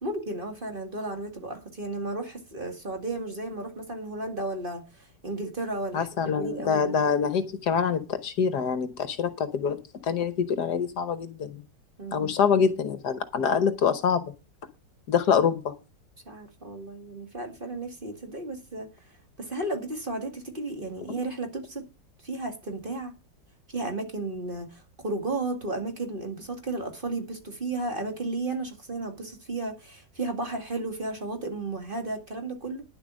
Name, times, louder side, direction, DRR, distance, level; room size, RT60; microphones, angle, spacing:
voice 1, 0.0-6.9 12.0-12.4 16.3-18.9 19.4-21.8 22.2-23.1 23.7-32.8, right 2 dB, 30° right, 2.3 m, -34 dB
voice 2, 5.9-11.6 12.1-14.2 15.1-15.7, left 6 dB, 65° left, 1.5 m, -25 dB
10.5 x 7.8 x 6.2 m
omnidirectional pair, 1.9 m